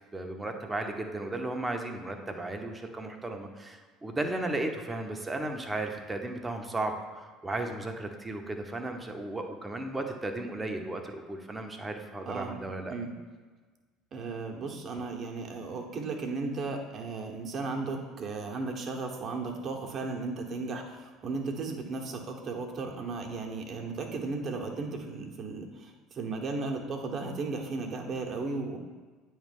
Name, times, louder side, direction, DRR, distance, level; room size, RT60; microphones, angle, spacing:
voice 1, 0.1-12.9, right 2 dB, 15° right, 4 dB, 1.0 m, -35 dB
voice 2, 12.3-12.6 12.9-13.1 14.1-28.8, right 3 dB, 45° right, 2 dB, 1.2 m, -35 dB
8.7 x 3.2 x 5.3 m, 1.4 s
hypercardioid pair, 70°, 0 cm